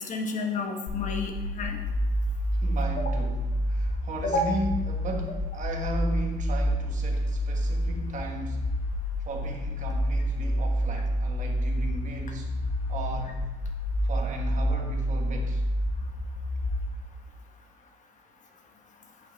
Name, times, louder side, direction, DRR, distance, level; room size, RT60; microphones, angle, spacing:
voice 1, 0.1-1.8 3.0-3.1 4.2-4.4, left 2 dB, 45° left, 1.4 m, -30 dB
sound 1, 0.9-16.9, equal, 80° left, 1.7 m, -28 dB
voice 2, 2.6-8.7 9.2-12.5 12.9-13.4 14.0-15.6, right 1 dB, 45° right, 1.6 m, -36 dB
10.0 x 5.6 x 4.1 m
cardioid pair, 110°, 17 cm